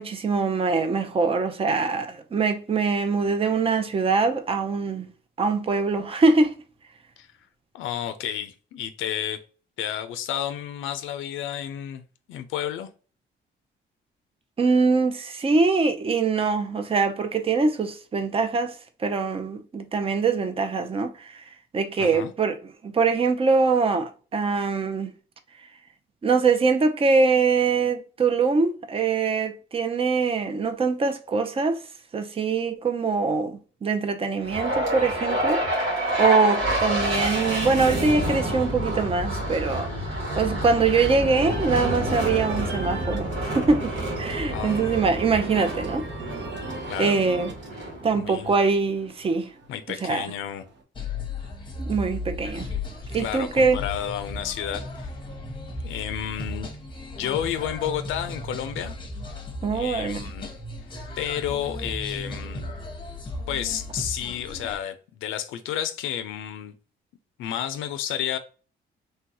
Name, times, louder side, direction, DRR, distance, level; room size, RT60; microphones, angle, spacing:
voice 1, 0.0-5.1 5.4-6.5 14.6-21.4 21.7-22.6 22.8-25.1 26.2-31.8 32.1-35.6 36.2-39.9 40.4-46.0 47.0-47.5 48.0-49.5 50.0-50.3 51.8-52.7 53.1-53.8 59.6-60.2, right 4 dB, 30° right, 0.5 m, -23 dB
voice 2, 7.7-9.4 9.8-12.0 12.3-12.9 22.0-22.3 44.5-44.8 46.3-46.4 46.9-47.2 48.1-48.5 49.7-50.6 53.2-54.9 55.8-56.7 57.2-58.9 59.7-60.5 61.2-62.6 63.5-66.7 67.4-68.4, left 10 dB, 85° left, 0.4 m, -31 dB
sound 1, 34.4-48.6, right 1 dB, 90° right, 1.4 m, -28 dB
sound 2, 41.4-50.8, right 4 dB, 65° right, 0.9 m, -39 dB
sound 3, 50.9-64.8, left 2 dB, 25° left, 0.9 m, -35 dB
3.3 x 2.2 x 2.7 m
cardioid pair, 90°, 20 cm